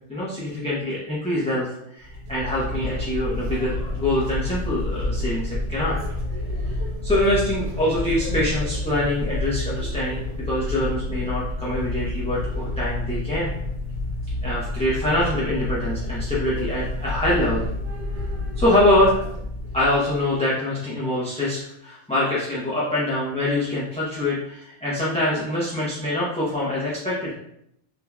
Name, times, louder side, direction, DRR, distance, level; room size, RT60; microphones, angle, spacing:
voice 1, 0.1-6.0 6.7-6.8 7.0-13.5 14.4-17.6 18.6-19.3 19.7-27.3, left 1 dB, 5° left, -8 dB, 0.6 m, -24 dB
sound 1, 2.0-20.2, left 2 dB, 75° right, 1.4 m, -29 dB
3.7 x 2.9 x 2.3 m, 0.75 s
omnidirectional pair, 1.2 m